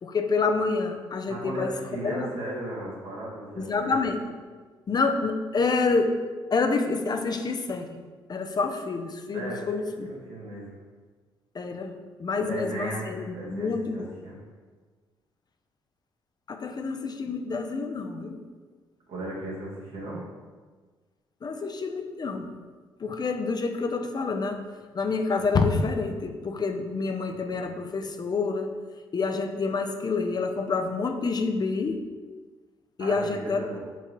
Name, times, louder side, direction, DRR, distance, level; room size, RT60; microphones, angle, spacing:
voice 1, 0.0-1.7 2.0-2.3 3.6-4.2 4.9-6.1 6.5-7.9 8.3-10.1 11.5-11.9 12.2-14.1 16.5-18.4 21.4-22.5 23.0-24.6 24.9-28.7 29.1-32.0 33.0-33.8, left 4 dB, 40° left, 5 dB, 0.5 m, -27 dB
voice 2, 1.3-4.0 9.3-9.7 10.0-10.7 12.4-14.4 19.1-20.2 33.0-33.8, right 1 dB, 70° right, -4 dB, 1.4 m, -36 dB
4.5 x 3.9 x 3.0 m, 1.4 s
hypercardioid pair, 50°, 11 cm